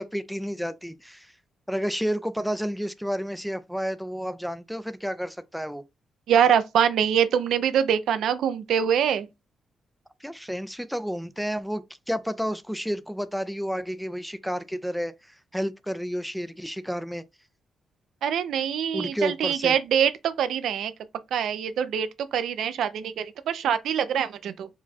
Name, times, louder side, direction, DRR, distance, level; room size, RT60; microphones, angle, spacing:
voice 1, 0.0-1.3 1.7-5.8 10.2-17.2 18.9-19.8, equal, ahead, 0.3 m, -31 dB
voice 2, 6.3-9.3 18.2-20.9 21.3-24.7, right 8 dB, 80° right, 0.5 m, -24 dB
4.8 x 2.3 x 4.1 m
cardioid pair, 140°, 0 cm